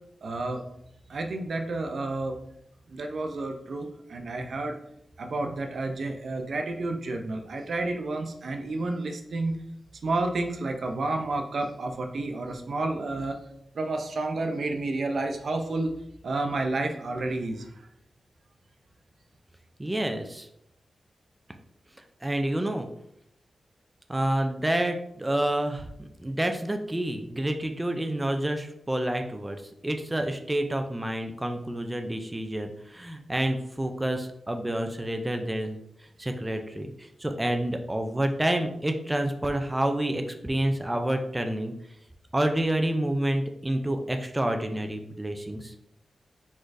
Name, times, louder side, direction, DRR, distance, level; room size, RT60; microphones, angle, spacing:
voice 1, 0.2-0.6 1.1-2.3 2.9-4.8 5.2-9.6 10.0-13.4 13.7-15.9 16.2-17.7, right 2 dB, 65° right, 5 dB, 0.5 m, -30 dB
voice 2, 19.8-20.5 22.2-22.9 24.1-25.9 26.2-29.6 29.8-35.8 36.2-41.7 42.3-45.7, right 1 dB, 15° right, 5 dB, 0.4 m, -28 dB
4.6 x 4.3 x 2.5 m, 0.77 s
wide cardioid pair, 95°, 0 cm